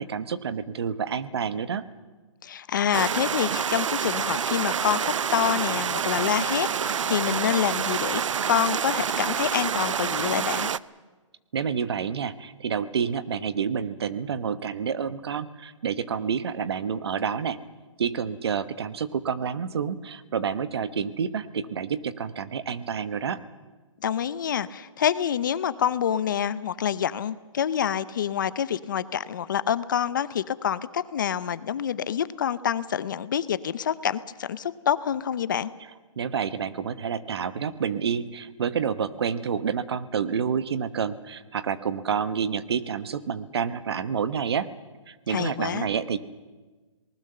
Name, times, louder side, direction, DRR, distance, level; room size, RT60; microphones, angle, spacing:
voice 1, 0.0-1.8 11.5-17.6 18.0-23.4 36.2-44.7 45.1-46.2, right 7 dB, 50° right, 13 dB, 1.1 m, -29 dB
voice 2, 2.4-8.2 8.5-10.7 24.0-35.7 45.3-45.9, left 9 dB, 40° left, 16 dB, 0.7 m, -27 dB
large-mountain-stream-surround-sound-rear, 2.9-10.8, right 7 dB, 70° right, 0.6 m, -27 dB
26.5 x 19.5 x 6.8 m, 1.3 s
hypercardioid pair, 165°, 17 cm